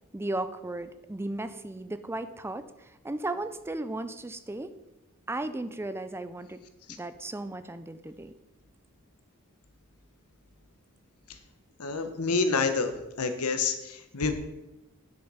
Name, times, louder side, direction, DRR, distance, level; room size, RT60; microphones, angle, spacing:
voice 1, 0.1-4.7 5.3-6.6 6.9-8.3, right 2 dB, 10° right, 11 dB, 0.4 m, -35 dB
voice 2, 11.8-14.3, left 4 dB, 90° left, 8 dB, 1.1 m, -28 dB
9.2 x 6.7 x 5.6 m, 0.97 s
head